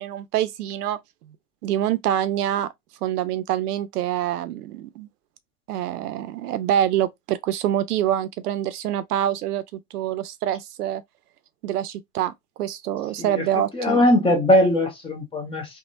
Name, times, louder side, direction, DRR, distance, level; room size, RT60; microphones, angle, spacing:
voice 1, 0.0-1.4 1.6-2.7 3.0-5.1 5.7-11.0 11.6-12.3 12.6-14.1, right 11 dB, 75° right, 0.7 m, -26 dB
voice 2, 13.7-15.8, left 1 dB, 10° left, 0.6 m, -20 dB
3.6 x 2.2 x 2.5 m
hypercardioid pair, 125°, 47 cm